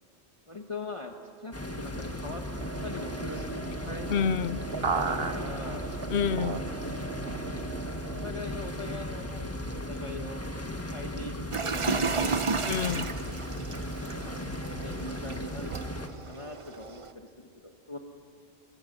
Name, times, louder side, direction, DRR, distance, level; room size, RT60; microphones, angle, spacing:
voice 1, 0.5-2.4 2.8-4.3 5.0-5.9 6.6-6.9 8.1-10.4 10.9-12.5 14.0-14.4 14.7-15.7 16.3-18.0, left 2 dB, 30° left, 2 dB, 1.4 m, -41 dB
sound 1, 1.5-16.1, left 1 dB, 15° left, 1.6 m, -36 dB
sound 2, 2.6-8.3, right 5 dB, 65° right, 1.3 m, -36 dB
voice 2, 4.1-4.6 6.1-6.6 12.7-13.1, left 7 dB, 75° left, 15 dB, 1.0 m, -28 dB
sound 3, 11.5-17.1, right 4 dB, 30° right, 0.8 m, -33 dB
26.0 x 23.0 x 6.7 m, 2.6 s
omnidirectional pair, 1.1 m